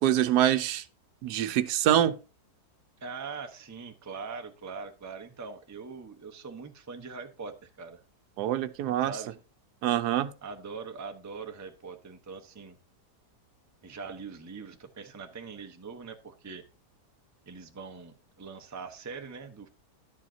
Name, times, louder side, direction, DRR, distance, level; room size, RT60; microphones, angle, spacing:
voice 1, 0.0-0.8 1.2-2.1 8.4-9.2 9.8-10.3, right 11 dB, 80° right, 1.2 m, -25 dB
voice 2, 3.0-8.0 9.1-9.3 10.4-12.8 13.8-16.6 17.5-19.7, right 5 dB, 20° right, 0.5 m, -42 dB
11.0 x 7.6 x 2.7 m
omnidirectional pair, 1.7 m